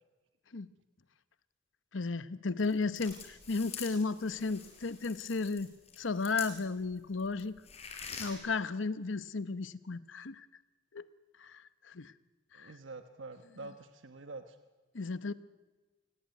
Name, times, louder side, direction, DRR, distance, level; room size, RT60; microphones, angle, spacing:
voice 1, 1.9-7.5 8.2-10.5 10.9-11.0 11.4-12.1 12.6-12.7 14.9-15.3, left 4 dB, 80° left, 15 dB, 0.9 m, -34 dB
sound 1, 2.6-6.9 7.2-8.3, left 6 dB, 35° left, 4.6 m, -45 dB
voice 2, 12.5-14.6, right 3 dB, 85° right, 8 dB, 1.2 m, -46 dB
27.0 x 18.5 x 9.4 m, 1.3 s
head